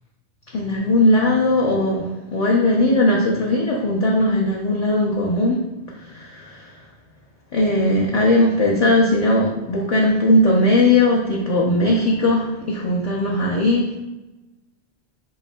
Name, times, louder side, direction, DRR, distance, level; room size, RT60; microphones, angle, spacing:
voice 1, 0.5-5.6 6.0-6.8 7.5-13.9, left 1 dB, 45° left, -3 dB, 0.5 m, -18 dB
5.5 x 3.9 x 2.2 m, 1.1 s
omnidirectional pair, 1.1 m